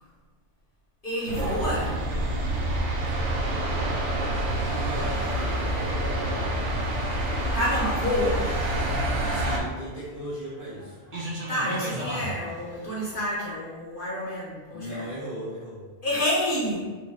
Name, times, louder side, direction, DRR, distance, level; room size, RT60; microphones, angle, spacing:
voice 1, 1.0-2.0 7.5-8.5 11.5-15.0 16.0-16.9, left 1 dB, 50° left, -6 dB, 0.9 m, -28 dB
sound 1, 1.3-9.6, right 1 dB, 80° right, 1.0 m, -27 dB
voice 2, 4.7-6.5 9.3-11.0 14.7-15.9 16.8-16.9, equal, 15° right, -9 dB, 1.3 m, -37 dB
sound 2, 9.7-13.4, right 1 dB, 40° right, 0.6 m, -37 dB
2.9 x 2.6 x 4.0 m, 1.4 s
omnidirectional pair, 1.2 m